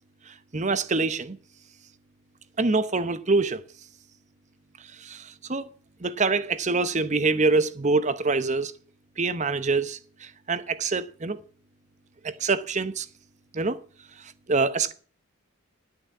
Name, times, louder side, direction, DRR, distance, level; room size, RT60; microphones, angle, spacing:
voice 1, 0.3-1.4 2.6-3.6 5.0-5.7 6.0-8.7 9.2-11.4 12.2-13.1 13.5-13.8 14.2-14.9, right 3 dB, 35° right, 0.8 m, -25 dB
11.0 x 6.4 x 8.3 m
head